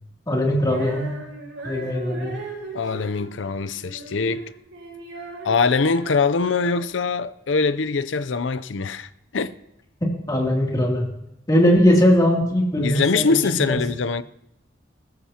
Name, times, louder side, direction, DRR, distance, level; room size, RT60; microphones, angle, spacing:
voice 1, 0.3-1.1 1.6-2.3 10.0-11.1 11.5-13.8, equal, 20° left, 2.8 m, -20 dB
Female singing, 0.6-7.0, right 2 dB, 90° right, 5.1 m, -38 dB
voice 2, 2.7-4.5 5.4-9.5 12.8-14.2, left 4 dB, 85° left, 0.6 m, -23 dB
21.0 x 14.0 x 2.9 m
head